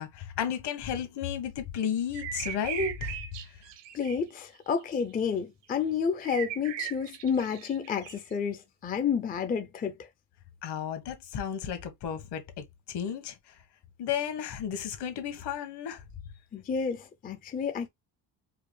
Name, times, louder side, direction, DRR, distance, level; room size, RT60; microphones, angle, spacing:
voice 1, 0.0-3.2 10.6-13.3 14.0-16.0, left 8 dB, 65° left, 1.4 m, -33 dB
sound 1, 2.1-4.2 4.8-5.0 6.2-8.3, right 11 dB, 75° right, 0.9 m, -38 dB
voice 2, 3.9-10.1 16.5-17.9, left 6 dB, 20° left, 0.4 m, -30 dB
4.8 x 2.2 x 3.3 m
cardioid pair, 140°, 44 cm